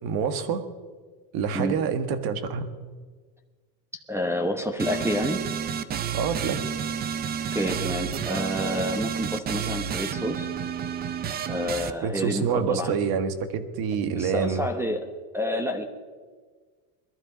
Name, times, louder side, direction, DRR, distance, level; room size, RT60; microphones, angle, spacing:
voice 1, 0.0-0.6 1.3-2.7 6.1-6.7 12.0-14.7, right 6 dB, 50° right, 10 dB, 1.7 m, -27 dB
voice 2, 4.1-5.4 7.5-10.5 11.5-13.0 14.1-15.1 15.3-15.8, equal, 5° right, 7 dB, 1.1 m, -28 dB
sound 1, 4.8-11.9, right 7 dB, 20° right, 0.4 m, -30 dB
21.5 x 13.0 x 5.1 m, 1.5 s
supercardioid pair, 140°, 49 cm